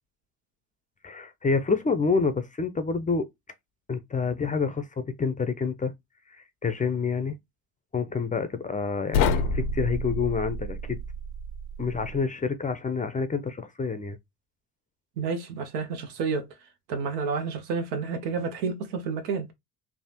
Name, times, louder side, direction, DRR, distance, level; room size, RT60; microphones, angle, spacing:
voice 1, 1.0-3.3 3.9-5.9 6.3-7.4 7.9-11.0 11.8-14.2, left 5 dB, 20° left, 0.4 m, -28 dB
sound 1, 9.1-12.2, left 3 dB, 80° left, 0.6 m, -28 dB
voice 2, 15.2-16.5 16.9-19.5, right 5 dB, 90° right, 0.8 m, -30 dB
3.4 x 2.0 x 2.7 m
supercardioid pair, 70°, 45 cm